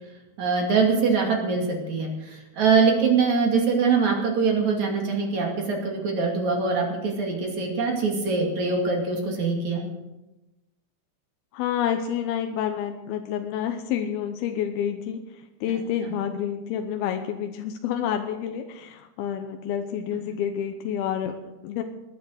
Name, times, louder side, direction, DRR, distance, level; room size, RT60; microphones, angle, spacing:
voice 1, 0.4-9.8 15.7-15.8, right 4 dB, 45° right, 0 dB, 3.2 m, -23 dB
voice 2, 11.5-21.8, left 9 dB, 75° left, 5 dB, 2.4 m, -29 dB
20.0 x 9.2 x 6.4 m, 1.0 s
omnidirectional pair, 5.2 m